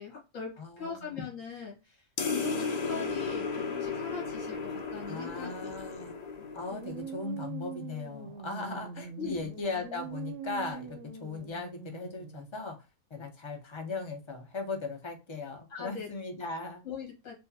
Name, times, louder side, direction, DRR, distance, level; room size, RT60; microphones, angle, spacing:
voice 1, 0.0-0.5 0.8-5.7 6.2-6.5 9.2-9.5 15.7-16.1 16.8-17.3, left 6 dB, 70° left, -1 dB, 1.7 m, -41 dB
voice 2, 0.6-1.3 5.0-6.2 6.5-12.8 13.1-16.8, left 3 dB, 30° left, 3 dB, 0.6 m, -38 dB
sound 1, 2.2-7.0, left 4 dB, 85° left, 0.3 m, -35 dB
sound 2, 6.7-12.6, right 7 dB, 70° right, 0.9 m, -43 dB
4.6 x 2.1 x 2.6 m, 0.29 s
omnidirectional pair, 1.4 m